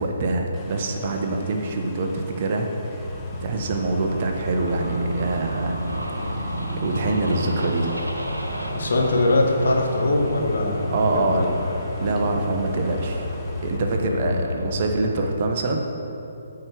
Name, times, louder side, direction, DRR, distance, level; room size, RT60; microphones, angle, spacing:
voice 1, 0.0-3.0 3.4-5.8 6.3-6.6 6.8-8.0 10.9-11.5 12.0-13.3 13.6-15.8, right 3 dB, 40° right, 3 dB, 1.1 m, -25 dB
sound 1, 0.5-13.8, left 5 dB, 20° left, 0.9 m, -40 dB
sound 2, 3.0-15.1, equal, 80° right, 1.5 m, -30 dB
voice 2, 7.0-7.4 8.7-11.5 14.0-14.4, left 2 dB, 55° left, 1 dB, 1.5 m, -23 dB
13.5 x 5.0 x 6.1 m, 2.8 s
figure-of-eight pair, 130°, 0 cm